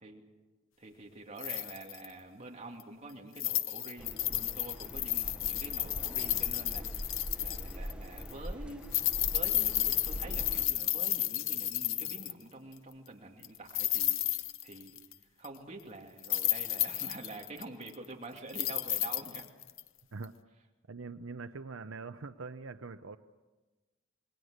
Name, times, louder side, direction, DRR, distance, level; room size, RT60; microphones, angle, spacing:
voice 1, 0.8-7.1 7.4-8.9 9.3-14.2 14.6-15.0 15.4-19.5, right 2 dB, 35° right, 0 dB, 2.7 m, -47 dB
sound 1, 1.4-2.1 2.8-2.9 3.4-7.9 8.2-8.3 8.8-12.4 13.4-15.1 15.4-15.5 16.2-18.1 18.5-19.8 20.2-20.3, left 13 dB, 70° left, 0.8 m, -32 dB
sound 2, 4.0-10.7, equal, 5° right, 0.8 m, -42 dB
voice 2, 20.9-23.2, right 4 dB, 70° right, 9 dB, 0.7 m, -43 dB
27.5 x 21.5 x 6.5 m, 1.2 s
head